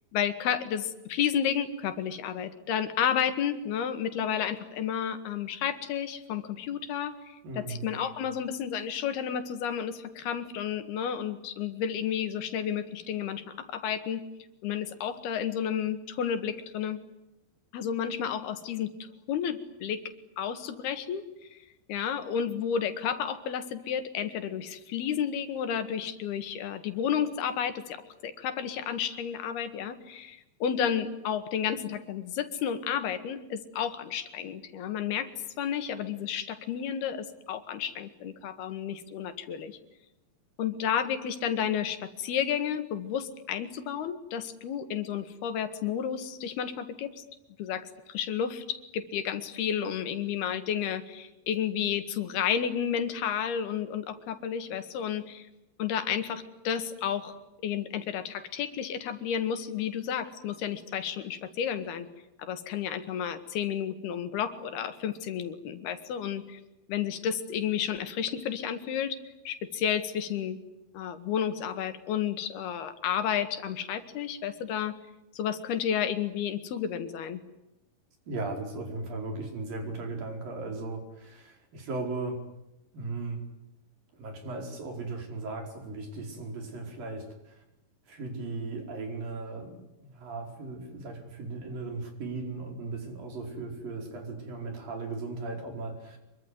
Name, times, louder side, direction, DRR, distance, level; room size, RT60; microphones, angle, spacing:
voice 1, 0.1-14.2 14.6-17.0 17.7-20.0 20.4-21.2 21.5-21.6 21.9-35.3 35.6-39.8 40.6-47.2 47.6-55.5 55.8-57.3 57.6-62.1 62.4-66.6 66.9-69.2 69.5-70.6 70.9-75.0 75.3-77.4, left 8 dB, 80° left, 10 dB, 3.8 m, -31 dB
voice 2, 7.4-7.9 78.3-82.4 82.9-83.4 84.1-87.6 88.1-96.2, right 3 dB, 60° right, 4 dB, 6.5 m, -37 dB
26.0 x 23.5 x 9.6 m, 0.91 s
omnidirectional pair, 4.5 m